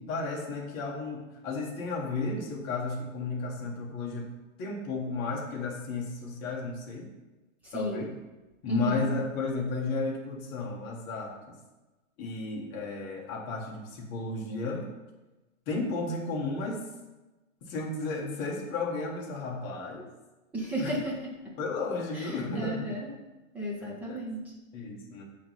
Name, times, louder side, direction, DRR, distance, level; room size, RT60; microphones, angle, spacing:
voice 1, 0.0-4.3 4.6-7.1 7.7-8.1 8.6-11.5 12.2-14.9 15.7-16.8 17.6-20.1 20.8-20.9 21.6-22.8 23.8-24.2 24.7-25.2, left 3 dB, 25° left, -2 dB, 1.2 m, -33 dB
voice 2, 7.6-8.1 8.7-9.1 20.5-21.6 22.1-23.1 23.5-24.5, right 1 dB, 5° right, -4 dB, 0.6 m, -34 dB
8.4 x 3.1 x 5.4 m, 1.1 s
hypercardioid pair, 155°, 40 cm